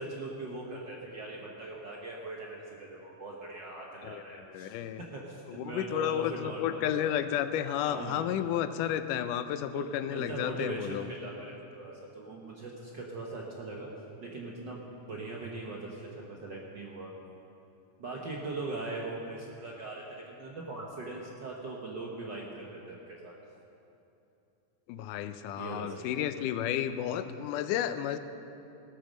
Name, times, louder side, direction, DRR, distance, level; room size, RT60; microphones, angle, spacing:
voice 1, 0.0-7.1 7.8-8.2 9.7-13.9 14.2-14.8 15.1-17.1 18.0-23.3 25.6-26.3, right 2 dB, 65° right, -2 dB, 1.1 m, -40 dB
voice 2, 4.0-5.0 5.5-11.1 24.9-28.2, left 10 dB, 90° left, 11 dB, 2.2 m, -32 dB
17.0 x 9.1 x 6.4 m, 2.8 s
omnidirectional pair, 3.6 m